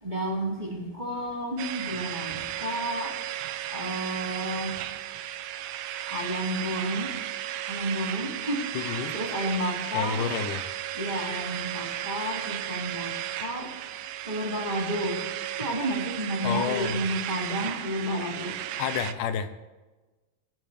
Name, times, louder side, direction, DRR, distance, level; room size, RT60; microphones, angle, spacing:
voice 1, 0.0-3.1 3.7-4.8 6.1-7.1 7.7-10.4 10.9-13.1 13.4-13.7 14.2-15.2 15.6-18.7, equal, 10° right, -2 dB, 2.1 m, -31 dB
sound 1, 1.6-19.1, right 12 dB, 80° right, 2.3 m, -34 dB
voice 2, 8.7-9.1 9.9-10.7 16.4-17.0 18.8-19.6, left 7 dB, 80° left, 9 dB, 2.5 m, -30 dB
24.5 x 11.5 x 3.4 m, 1.2 s
omnidirectional pair, 3.7 m